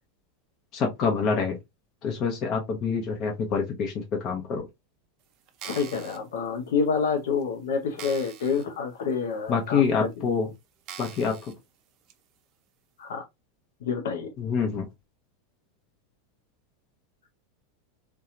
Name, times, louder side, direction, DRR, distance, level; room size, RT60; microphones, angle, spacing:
voice 1, 0.7-1.6 2.0-4.7 9.5-10.5 11.0-11.5 14.4-14.8, left 5 dB, 45° left, 0.8 m, -26 dB
sound 1, 5.5-6.2 6.9-7.0 7.4-7.5 8.0-8.7 9.1-9.2 9.9-10.0 10.9-11.5 12.1-12.2, right 9 dB, 50° right, 0.5 m, -43 dB
voice 2, 5.6-10.3 13.0-13.2 13.8-14.3, left 5 dB, 75° left, 0.5 m, -28 dB
2.7 x 2.2 x 2.4 m
hypercardioid pair, 95°, 0 cm